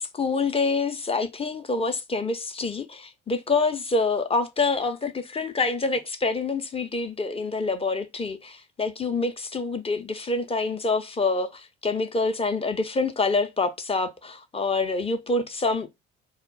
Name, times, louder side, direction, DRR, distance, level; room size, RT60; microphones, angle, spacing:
voice 1, 0.0-15.9, left 3 dB, 20° left, 0.4 m, -26 dB
2.1 x 2.0 x 3.7 m
hypercardioid pair, 55°, 31 cm